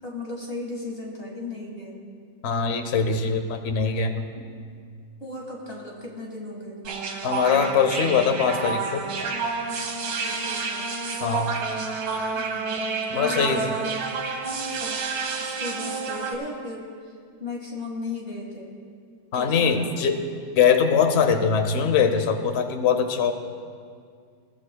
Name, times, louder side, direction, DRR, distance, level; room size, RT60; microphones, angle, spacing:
voice 1, 0.0-2.0 4.3-4.4 5.2-6.8 10.0-10.9 12.3-13.9 14.5-15.0 15.4-17.1 17.4-18.7 19.3-20.0, left 2 dB, 35° left, -2 dB, 2.1 m, -36 dB
voice 2, 2.4-4.2 7.2-9.0 11.2-11.6 13.1-13.6 19.3-20.2 20.6-23.3, left 6 dB, 60° left, 7 dB, 0.7 m, -22 dB
sound 1, 6.8-16.3, right 4 dB, 75° right, 1.8 m, -29 dB
21.0 x 14.5 x 2.3 m, 2.1 s
omnidirectional pair, 2.2 m